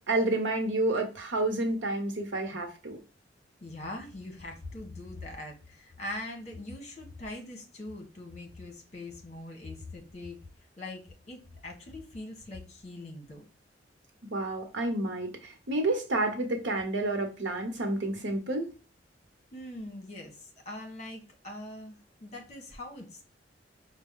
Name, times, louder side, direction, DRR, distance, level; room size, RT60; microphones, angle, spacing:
voice 1, 0.0-3.0 14.3-18.7, right 2 dB, 85° right, 4 dB, 1.0 m, -30 dB
voice 2, 3.6-10.4 10.8-13.4 19.5-23.3, left 1 dB, 35° left, 2 dB, 1.2 m, -42 dB
5.2 x 2.2 x 3.6 m, 0.33 s
head